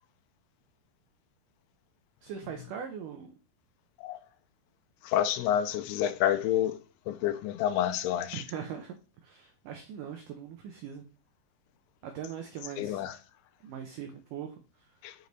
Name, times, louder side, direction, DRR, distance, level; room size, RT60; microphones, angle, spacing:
voice 1, 2.2-3.4 8.3-9.0 9.2-11.0 12.0-13.0 13.6-14.9, right 8 dB, 80° right, 1.9 m, -41 dB
voice 2, 5.0-6.8 7.1-8.4 12.8-13.2 15.0-15.2, left 11 dB, 85° left, 2.6 m, -28 dB
9.5 x 5.1 x 4.0 m
omnidirectional pair, 4.7 m